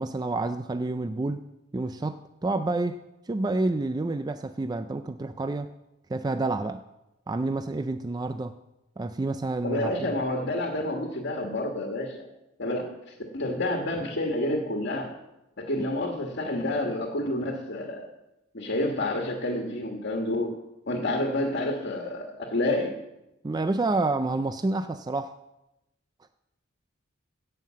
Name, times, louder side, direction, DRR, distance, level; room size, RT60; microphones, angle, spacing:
voice 1, 0.0-1.4 1.7-3.0 3.3-5.7 6.1-6.8 7.3-8.6 9.0-10.1 23.4-25.3, right 2 dB, 20° right, 10 dB, 0.3 m, -29 dB
voice 2, 9.6-12.3 12.6-15.1 15.6-18.1 18.5-20.5 20.9-23.0, left 1 dB, 55° left, 1 dB, 1.5 m, -29 dB
16.5 x 5.7 x 7.4 m, 0.92 s
head